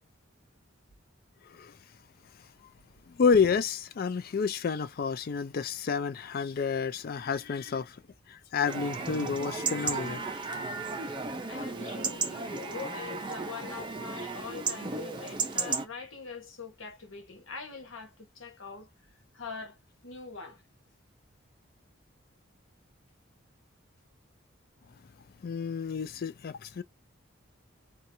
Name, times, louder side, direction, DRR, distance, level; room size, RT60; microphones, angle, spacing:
voice 1, 1.4-1.8 3.1-8.0 8.3-10.3 25.4-26.8, left 5 dB, 50° left, 0.4 m, -29 dB
sound 1, 7.4-7.5 8.7-9.9 10.5-11.2 13.1-13.2, right 4 dB, 80° right, 0.6 m, -47 dB
Chatter / Livestock farm animals working animals / Chirp tweet, 8.6-15.8, right 4 dB, 25° right, 0.5 m, -34 dB
voice 2, 11.5-18.9 19.3-19.8 20.0-20.6, left 5 dB, 90° left, 1.1 m, -43 dB
2.9 x 2.3 x 2.6 m
head